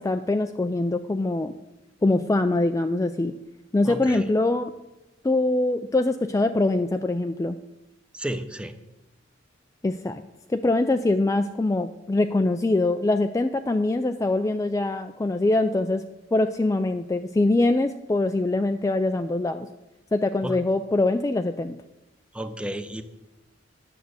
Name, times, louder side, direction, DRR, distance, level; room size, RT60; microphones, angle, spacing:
voice 1, 0.0-1.5 2.0-3.3 3.7-4.7 5.2-7.6 9.8-10.2 10.5-16.0 16.3-19.7 20.1-21.8, left 2 dB, 15° left, 7 dB, 0.3 m, -23 dB
voice 2, 3.8-4.3 8.1-8.7 20.4-20.6 22.3-23.0, right 1 dB, 5° right, 9 dB, 0.7 m, -32 dB
10.0 x 6.5 x 8.0 m, 0.99 s
head